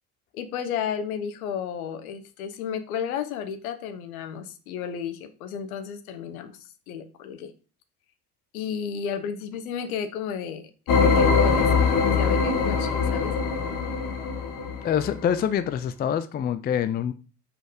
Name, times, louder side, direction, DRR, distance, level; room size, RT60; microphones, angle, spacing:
voice 1, 0.3-7.5 8.5-10.6 11.1-13.3, left 7 dB, 65° left, 8 dB, 1.2 m, -33 dB
sound 1, 10.9-15.2, left 5 dB, 40° left, 1.6 m, -22 dB
voice 2, 14.8-17.1, left 9 dB, 20° left, 12 dB, 0.5 m, -25 dB
6.1 x 4.7 x 5.0 m, 0.36 s
figure-of-eight pair, 60°, 47 cm